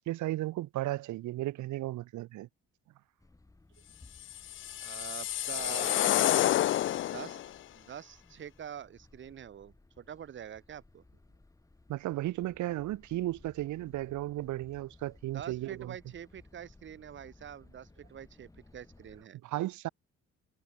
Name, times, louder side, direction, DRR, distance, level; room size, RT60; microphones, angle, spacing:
voice 1, 0.0-2.5 11.9-15.9 19.4-19.9, right 16 dB, 75° right, 2.0 m, -35 dB
sound 1, 3.2-19.2, left 2 dB, 10° left, 7.1 m, -60 dB
sound 2, 4.3-7.5, left 13 dB, 45° left, 0.4 m, -29 dB
voice 2, 4.8-6.1 7.1-11.0 15.3-19.4, right 9 dB, 40° right, 2.6 m, -45 dB
cardioid pair, 165°, 30 cm